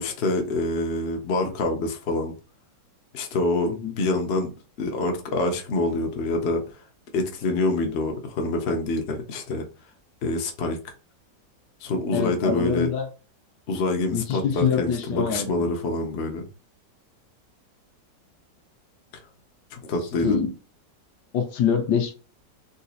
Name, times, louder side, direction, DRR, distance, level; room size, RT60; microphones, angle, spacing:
voice 1, 0.0-2.3 3.1-4.5 4.8-6.6 7.1-9.6 10.2-10.8 11.8-12.9 13.7-16.5 19.7-20.4, left 2 dB, 55° left, 0.8 m, -26 dB
voice 2, 12.1-13.1 14.1-15.6 20.2-20.5 21.3-22.1, left 7 dB, 70° left, 1.3 m, -24 dB
3.9 x 2.7 x 2.4 m
omnidirectional pair, 1.9 m